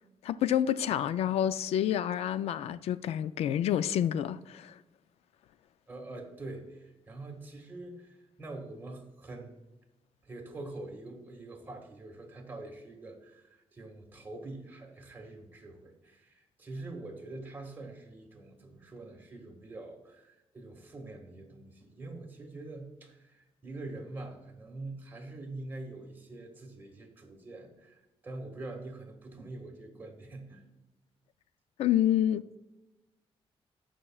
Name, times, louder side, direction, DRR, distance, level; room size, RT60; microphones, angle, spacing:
voice 1, 0.2-4.7 31.8-32.4, left 10 dB, 90° left, 0.4 m, -28 dB
voice 2, 5.9-9.6 10.2-30.6, right 2 dB, 20° right, 1.7 m, -45 dB
17.5 x 6.0 x 2.3 m
wide cardioid pair, 140°, 10 cm